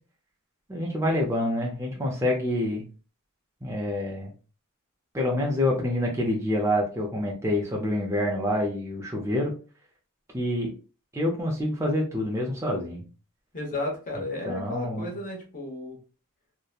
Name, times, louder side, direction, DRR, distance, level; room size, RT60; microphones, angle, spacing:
voice 1, 0.7-2.8 3.6-4.3 5.1-9.5 10.3-10.7 11.1-13.0 14.5-15.1, left 1 dB, 15° right, -1 dB, 0.5 m, -27 dB
voice 2, 13.5-16.0, left 2 dB, 35° left, -1 dB, 0.9 m, -33 dB
2.8 x 2.1 x 2.3 m, 0.36 s
head